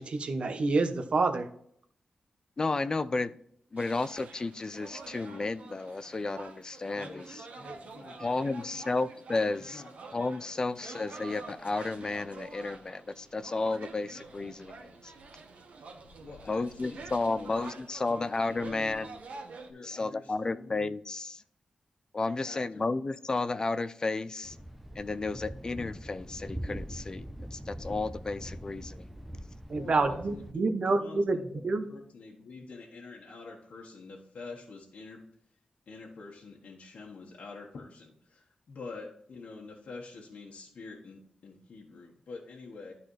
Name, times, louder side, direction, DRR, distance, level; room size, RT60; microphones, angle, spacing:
voice 1, 0.0-1.5 29.7-31.9, right 3 dB, 50° right, 7 dB, 0.9 m, -28 dB
voice 2, 2.6-3.4 3.7-7.4 8.2-9.8 10.1-15.1 16.5-19.2 19.8-21.4 22.1-24.6 25.0-29.1, left 3 dB, 30° left, 13 dB, 0.4 m, -32 dB
sound 1, 3.8-19.7, right 3 dB, 75° right, 1.2 m, -47 dB
voice 3, 7.6-8.9 9.4-9.9 10.7-11.1 16.2-17.0 17.3-17.7 18.1-19.1 19.7-20.9 22.2-22.9 29.7-35.2 35.9-42.9, left 3 dB, 70° left, -2 dB, 1.3 m, -47 dB
Thunder, 24.4-30.5, equal, 5° right, 0.7 m, -42 dB
12.5 x 4.1 x 3.2 m, 0.67 s
wide cardioid pair, 145°, 2 cm